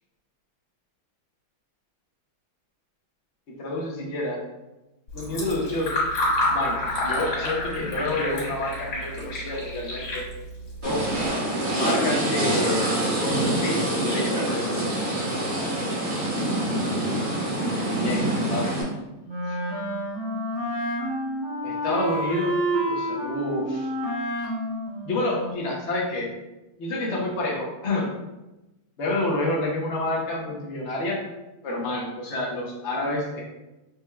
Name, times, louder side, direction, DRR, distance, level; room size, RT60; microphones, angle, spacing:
voice 1, 3.6-4.4 5.1-5.9 6.5-10.3 10.8-11.1 11.7-12.9 13.2-14.8 17.9-18.8 19.5-19.6 21.6-22.5 22.8-23.9 25.0-26.3 26.8-28.1 29.0-31.2 31.6-33.4, left 2 dB, 70° left, -3 dB, 0.6 m, -29 dB
Fill (with liquid), 5.1-11.3, left 1 dB, 55° left, 2.0 m, -29 dB
sound 1, 10.8-18.8, right 1 dB, 90° right, 2.6 m, -25 dB
Wind instrument woodwind instrument, 19.3-25.9, equal, 40° right, 0.6 m, -29 dB
6.6 x 3.1 x 2.3 m, 1.0 s
omnidirectional pair, 2.4 m